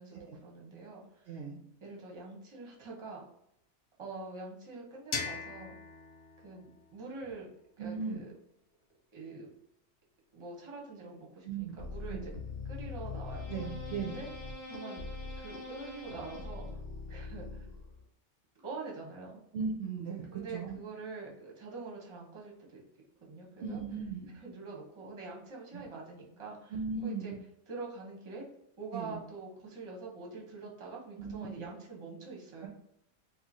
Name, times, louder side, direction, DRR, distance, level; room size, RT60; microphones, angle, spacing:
voice 1, 0.0-1.3 1.8-3.2 4.0-5.8 6.4-7.5 7.8-8.3 9.1-9.5 10.3-12.3 12.7-13.5 14.0-14.3 14.7-15.0 15.4-16.8 17.1-17.5 18.6-19.4 20.3-22.8 23.2-23.8 24.3-26.7 27.0-27.3 27.7-28.5 28.8-32.7, right 3 dB, 25° right, -2 dB, 0.6 m, -45 dB
voice 2, 1.3-1.6 7.8-8.2 11.4-11.8 12.1-12.3 13.5-14.2 19.5-20.8 23.6-24.3 25.7-25.9 26.7-27.4 28.9-29.2 31.2-31.7 32.6-32.7, right 5 dB, 65° right, 0 dB, 0.7 m, -38 dB
sound 1, 5.1-7.9, left 5 dB, 90° left, 1.2 m, -41 dB
sound 2, 11.8-18.0, left 3 dB, 30° left, 1.0 m, -42 dB
3.0 x 2.2 x 3.9 m, 0.77 s
omnidirectional pair, 1.6 m